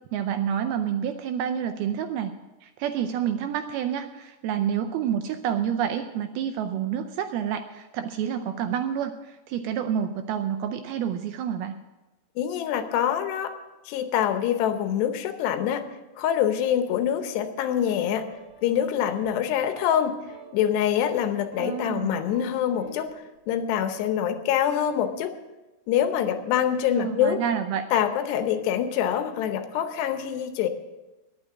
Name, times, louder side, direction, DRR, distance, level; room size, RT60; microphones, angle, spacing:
voice 1, 0.1-2.3 2.6-11.7 21.6-22.2 26.9-27.9, right 9 dB, 80° right, 7 dB, 2.3 m, -28 dB
voice 2, 12.4-13.5 13.9-15.8 16.2-18.3 18.6-20.2 20.5-25.4 25.9-27.4 27.9-30.7, left 9 dB, 80° left, 8 dB, 3.0 m, -25 dB
sound 1, 18.3-18.8 19.0-19.3 19.6-20.0 20.3-20.5 20.9-21.8 22.1-23.1, right 4 dB, 50° right, 2.4 m, -47 dB
10.5 x 9.7 x 8.5 m, 1.1 s
omnidirectional pair, 4.9 m